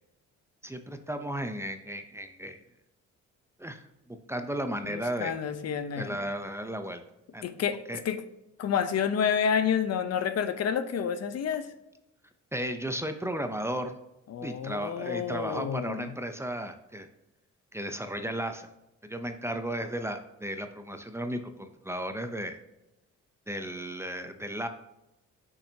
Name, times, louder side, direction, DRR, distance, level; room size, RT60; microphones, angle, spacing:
voice 1, 0.6-2.6 3.6-5.3 6.0-7.0 7.3-7.4 7.9-8.0 12.5-14.0 14.4-17.1 17.7-18.7 19.0-22.6 23.5-24.7, right 1 dB, 10° right, 7 dB, 0.6 m, -34 dB
voice 2, 4.8-6.2 7.4-8.2 8.6-11.7 14.3-16.1, left 7 dB, 55° left, 10 dB, 0.7 m, -29 dB
6.8 x 5.7 x 2.8 m, 0.91 s
cardioid pair, 90°, 30 cm